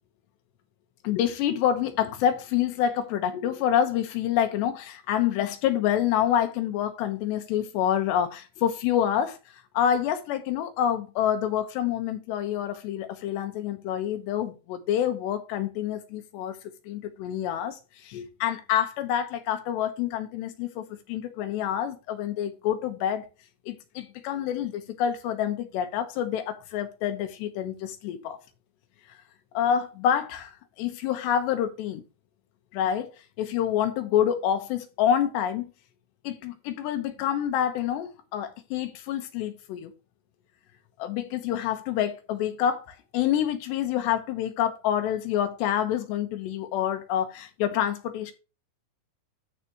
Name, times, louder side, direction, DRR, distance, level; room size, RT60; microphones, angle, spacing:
voice 1, 1.0-9.4 9.7-16.6 16.9-23.2 23.7-28.4 29.5-32.0 32.7-33.1 33.4-35.7 36.2-39.9 41.0-48.3, left 10 dB, 80° left, 3.2 m, -27 dB
13.5 x 5.0 x 2.9 m
omnidirectional pair, 5.1 m